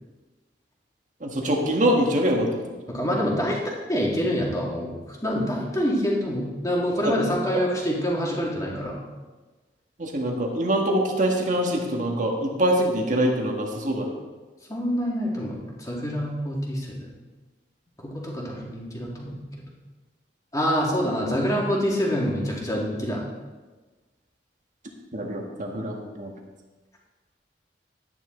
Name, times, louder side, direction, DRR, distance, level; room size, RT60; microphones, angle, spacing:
voice 1, 1.2-2.8 7.0-7.1 10.0-14.1 25.1-26.3, right 1 dB, 45° right, 1 dB, 1.7 m, -24 dB
voice 2, 2.9-3.6 3.9-9.0 14.7-17.1 18.0-19.4 20.5-23.2, equal, 20° left, -3 dB, 2.3 m, -26 dB
12.0 x 9.9 x 3.9 m, 1.3 s
head